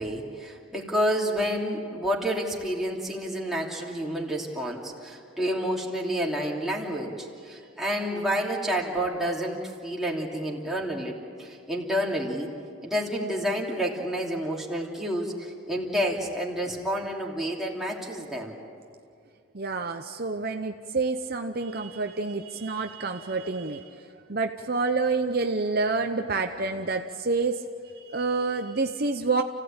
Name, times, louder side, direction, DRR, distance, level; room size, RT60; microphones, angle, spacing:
voice 1, 0.0-12.5 12.8-18.6, equal, ahead, -3 dB, 2.9 m, -29 dB
voice 2, 19.5-27.7 27.9-29.4, right 3 dB, 45° right, 5 dB, 0.8 m, -28 dB
29.5 x 16.5 x 8.8 m, 2.3 s
head